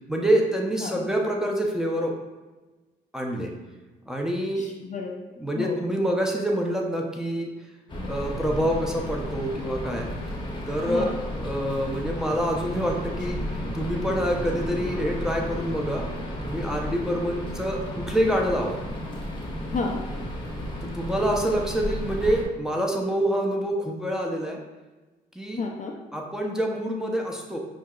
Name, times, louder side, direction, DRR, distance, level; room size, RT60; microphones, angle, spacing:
voice 1, 0.1-2.1 3.1-3.5 4.0-4.7 5.4-7.5 8.1-10.1 10.7-11.1 11.4-13.4 13.7-16.1 16.4-18.8 20.9-24.6 25.3-25.6 26.1-27.6, equal, 5° right, 0 dB, 0.6 m, -26 dB
voice 2, 4.6-5.2 5.5-5.8 10.9-11.2 19.7-20.0 25.6-26.0, left 4 dB, 40° left, 1 dB, 0.4 m, -31 dB
sound 1, 7.9-22.4, equal, 25° left, 0.8 m, -33 dB
5.2 x 2.1 x 2.3 m, 1.2 s
supercardioid pair, 60°, 20 cm